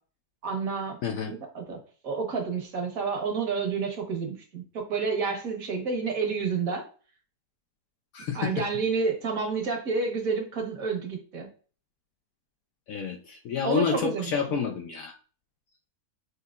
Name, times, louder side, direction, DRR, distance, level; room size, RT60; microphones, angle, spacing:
voice 1, 0.4-1.0 1.3-6.8 8.3-11.5 13.6-14.3, right 5 dB, 60° right, 2 dB, 1.5 m, -29 dB
voice 2, 1.0-1.3 8.1-8.6 12.9-15.1, left 6 dB, 70° left, 3 dB, 0.9 m, -29 dB
6.3 x 2.8 x 2.4 m, 0.39 s
omnidirectional pair, 1.7 m